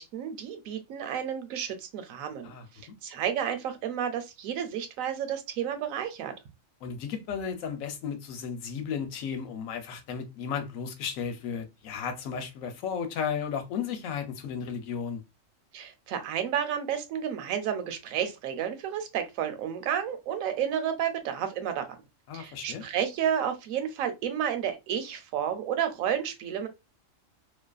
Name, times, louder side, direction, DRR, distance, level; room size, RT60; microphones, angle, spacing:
voice 1, 0.0-6.3 15.7-22.0 22.3-26.7, right 9 dB, 90° right, 1.0 m, -31 dB
voice 2, 6.8-15.2 22.3-22.8, left 7 dB, 85° left, 1.0 m, -34 dB
2.5 x 2.4 x 2.3 m
omnidirectional pair, 1.4 m